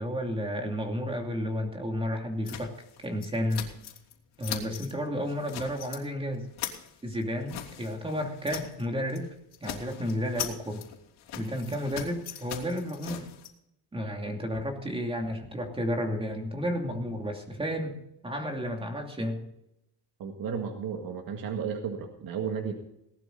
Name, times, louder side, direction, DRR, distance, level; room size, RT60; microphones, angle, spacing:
voice 1, 0.0-2.7 3.0-3.7 4.4-6.5 7.0-9.3 9.6-10.8 11.4-13.2 13.9-18.0 18.2-19.4, equal, 15° right, 3 dB, 2.7 m, -32 dB
sound 1, 2.5-4.1 4.4-4.9 5.3-6.0 6.3-8.8 9.1-9.3 9.5-13.5, left 10 dB, 75° left, 3.2 m, -40 dB
voice 2, 20.2-22.7, right 6 dB, 60° right, 3 dB, 1.9 m, -33 dB
18.5 x 12.0 x 4.0 m, 0.81 s
cardioid pair, 150°, 40 cm